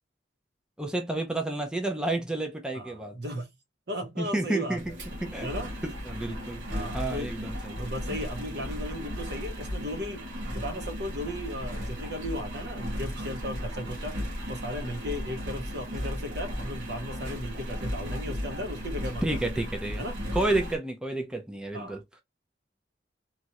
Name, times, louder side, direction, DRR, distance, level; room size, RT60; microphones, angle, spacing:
voice 1, 0.8-3.2 4.2-4.9 5.2-5.5 5.8-7.8 19.2-20.0 20.3-22.0, right 2 dB, 5° right, 0.5 m, -30 dB
voice 2, 2.7-3.5 3.9-4.8 5.4-5.7 6.7-7.3 7.8-10.2 10.5-14.2 14.5-19.2 20.0-20.1 21.7-22.0, equal, 65° right, 0.9 m, -36 dB
Engine, 4.7-20.8, equal, 85° right, 1.1 m, -35 dB
3.0 x 2.4 x 2.8 m
head